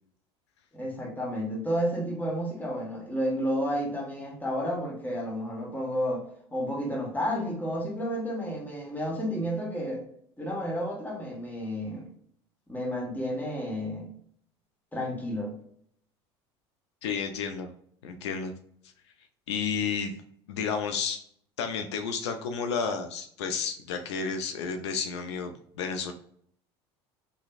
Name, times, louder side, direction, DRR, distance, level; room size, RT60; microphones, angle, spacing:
voice 1, 0.7-6.3 6.5-10.0 10.4-12.1 12.7-14.1 14.9-15.6, equal, 10° left, -1 dB, 1.5 m, -31 dB
voice 2, 17.0-17.7 18.0-18.5 19.5-20.1 20.5-21.2 21.6-26.1, left 6 dB, 85° left, 7 dB, 0.4 m, -31 dB
3.5 x 3.2 x 2.4 m, 0.64 s
hypercardioid pair, 75°, 14 cm